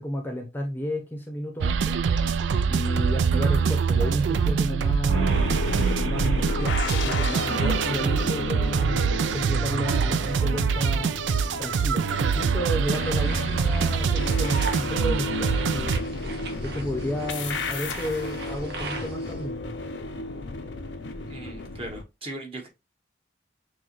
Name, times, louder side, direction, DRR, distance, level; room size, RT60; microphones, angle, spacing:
voice 1, 0.0-2.0 2.7-5.4 5.7-11.2 11.6-15.9 16.6-19.7, equal, 10° left, 2 dB, 0.7 m, -32 dB
sound 1, 1.6-16.0, right 6 dB, 80° right, 0.3 m, -24 dB
sound 2, 5.1-22.0, left 2 dB, 85° left, 0.6 m, -33 dB
sound 3, 12.7-19.4, right 3 dB, 60° right, 1.0 m, -40 dB
voice 2, 21.3-22.7, right 2 dB, 30° right, 1 dB, 1.0 m, -38 dB
6.1 x 2.2 x 3.0 m, 0.25 s
head